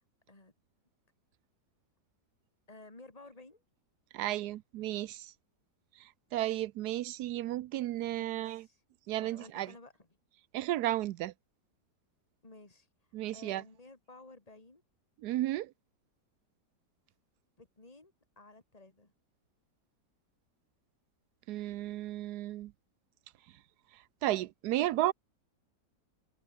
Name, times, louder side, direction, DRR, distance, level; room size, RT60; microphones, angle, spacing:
voice 1, 2.7-3.6 8.1-8.8 9.1-10.1 12.4-12.9 13.3-14.8 17.6-19.1, left 2 dB, 20° left, 3.4 m, -54 dB
voice 2, 4.1-5.3 6.0-8.7 9.1-9.7 10.5-11.3 13.1-13.6 15.2-15.7 21.5-22.7 24.2-25.1, right 14 dB, 75° right, 1.1 m, -33 dB
omnidirectional pair, 1.8 m